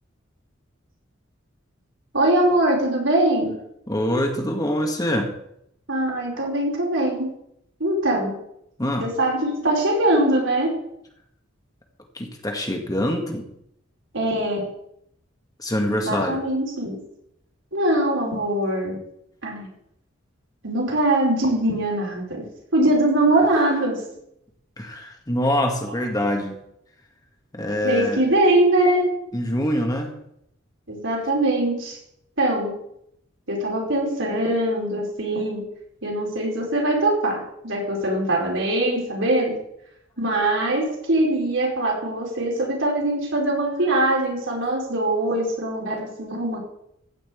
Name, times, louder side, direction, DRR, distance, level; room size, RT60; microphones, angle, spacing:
voice 1, 2.1-3.5 5.9-7.3 7.8-8.3 9.0-10.7 14.1-14.7 15.9-17.0 17.7-19.0 19.4-19.7 20.6-22.4 22.7-24.0 27.8-29.1 30.9-32.0 32.4-32.7 33.5-35.6 36.0-39.5 40.2-46.6, right 1 dB, 70° right, -2 dB, 5.1 m, -22 dB
voice 2, 3.9-5.3 8.8-9.1 12.1-13.5 15.6-16.4 24.8-26.6 27.5-28.2 29.3-30.1, left 1 dB, 20° left, 3 dB, 1.8 m, -24 dB
15.0 x 5.9 x 8.7 m, 0.76 s
head